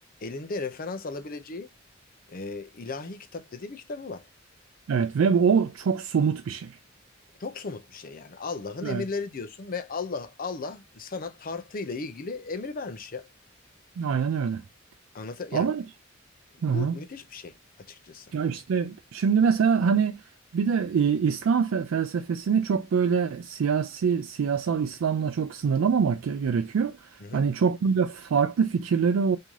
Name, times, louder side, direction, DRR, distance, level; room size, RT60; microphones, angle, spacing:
voice 1, 0.2-1.7 2.3-4.2 7.4-13.3 15.1-15.7 16.6-17.5 17.9-18.3 27.2-27.4, left 4 dB, 45° left, 0.6 m, -35 dB
voice 2, 4.9-6.8 8.8-9.0 14.0-14.6 15.5-15.8 16.6-16.9 18.3-20.2 20.5-29.4, right 6 dB, 85° right, 0.4 m, -24 dB
3.1 x 2.7 x 3.5 m
head